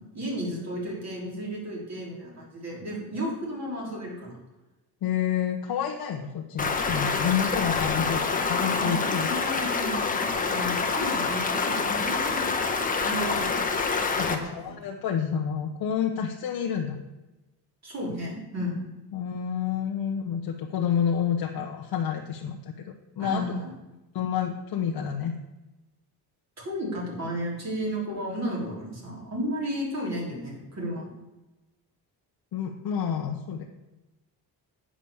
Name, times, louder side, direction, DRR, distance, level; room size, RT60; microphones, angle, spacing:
voice 1, 0.0-4.4 8.7-13.5 14.2-14.7 17.8-18.9 23.2-23.7 26.6-31.1, equal, 40° right, -3 dB, 3.4 m, -33 dB
voice 2, 5.0-9.3 14.2-17.0 19.1-22.7 23.2-23.6 24.1-25.4 32.5-33.7, left 8 dB, 70° left, 1 dB, 0.9 m, -29 dB
Stream, 6.6-14.4, left 4 dB, 20° left, 0.9 m, -26 dB
8.7 x 5.0 x 7.0 m, 1.0 s
cardioid pair, 140°, 39 cm